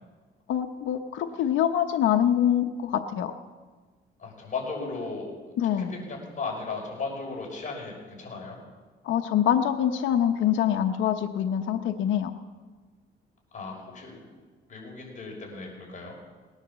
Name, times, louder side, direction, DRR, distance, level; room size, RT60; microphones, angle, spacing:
voice 1, 0.5-3.3 5.6-5.9 9.0-12.3, left 10 dB, 75° left, 5 dB, 0.9 m, -25 dB
voice 2, 4.2-5.3 5.8-8.6 13.5-14.3 14.7-16.2, left 4 dB, 40° left, -1 dB, 5.9 m, -36 dB
19.0 x 10.0 x 7.4 m, 1.4 s
cardioid pair, 90°, 20 cm